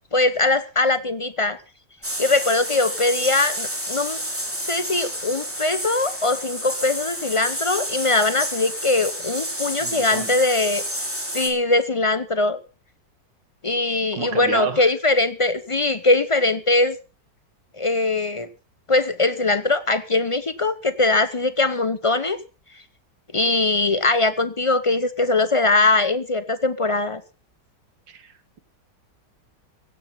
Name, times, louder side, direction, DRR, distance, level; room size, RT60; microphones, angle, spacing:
voice 1, 0.1-1.6 2.2-4.2 4.7-10.8 11.3-12.6 13.6-17.0 17.8-18.5 18.9-22.4 23.3-27.2, left 2 dB, 45° left, 13 dB, 0.4 m, -21 dB
sound 1, 2.0-11.5, equal, 5° right, 3.5 m, -30 dB
voice 2, 9.8-10.3 14.1-14.9 28.1-28.6, right 6 dB, 85° right, 11 dB, 2.2 m, -31 dB
16.5 x 10.5 x 5.6 m, 0.35 s
omnidirectional pair, 1.9 m